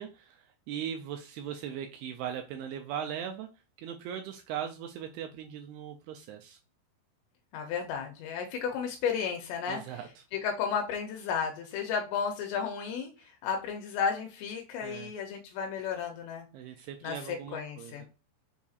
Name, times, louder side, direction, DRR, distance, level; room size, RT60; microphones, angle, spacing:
voice 1, 0.0-3.5 3.8-6.6 9.7-10.1 14.8-15.1 16.5-18.1, right 9 dB, 85° right, 5 dB, 2.3 m, -39 dB
voice 2, 7.5-9.8 10.3-16.5 17.0-18.0, left 6 dB, 85° left, 2 dB, 2.9 m, -33 dB
6.9 x 2.7 x 2.4 m, 0.32 s
omnidirectional pair, 4.9 m